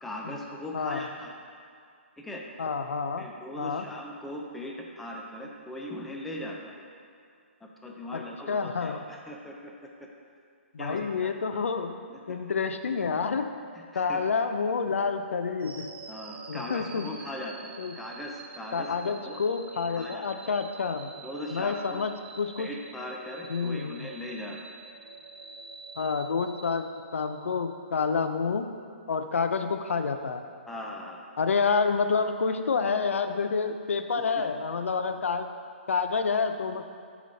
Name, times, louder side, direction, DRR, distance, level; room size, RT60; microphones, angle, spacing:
voice 1, 0.0-1.3 2.2-2.4 3.2-6.8 7.8-9.7 10.8-11.3 12.3-12.4 13.9-14.2 16.1-19.4 20.0-20.3 21.2-22.0 22.6-24.6 30.7-31.2, left 1 dB, 5° left, -1 dB, 0.4 m, -39 dB
voice 2, 0.7-1.1 2.6-3.3 3.6-3.9 8.1-8.2 8.5-9.1 10.7-12.0 12.3-13.5 13.9-15.9 16.5-17.1 17.8-17.9 18.7-21.1 21.5-22.7 23.5-24.1 26.0-28.7 29.1-30.4 31.4-35.5 35.9-36.8, left 5 dB, 85° left, 8 dB, 0.5 m, -28 dB
sound 1, 15.6-27.7, right 4 dB, 55° right, 0.7 m, -47 dB
6.3 x 5.0 x 3.9 m, 2.3 s
hypercardioid pair, 155°, 7 cm